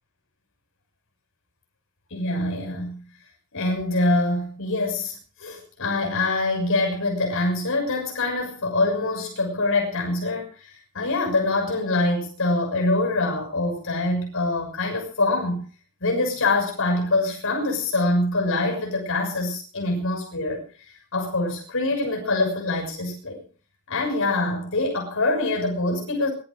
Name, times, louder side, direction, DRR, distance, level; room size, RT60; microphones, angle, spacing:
voice 1, 2.1-3.0 3.5-15.6 16.0-23.4 23.9-26.3, left 2 dB, 65° left, 1 dB, 6.6 m, -25 dB
22.5 x 12.0 x 4.9 m, 0.39 s
head